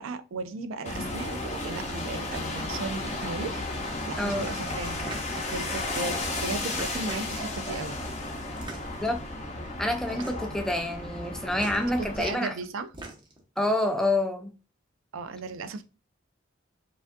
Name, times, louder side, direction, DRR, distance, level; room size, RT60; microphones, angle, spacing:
voice 1, 0.0-8.0 12.0-12.9 15.1-15.9, right 3 dB, 80° right, 0.4 m, -36 dB
sound 1, 0.8-12.3, left 2 dB, 35° left, 0.7 m, -33 dB
sound 2, 5.0-5.4 6.5-7.2 8.5-9.1 10.1-10.6 11.5-11.8 12.7-13.4, right 2 dB, 25° right, 0.7 m, -41 dB
voice 2, 9.8-12.5 13.6-14.5, left 1 dB, 5° left, 0.3 m, -27 dB
4.7 x 2.4 x 2.5 m
head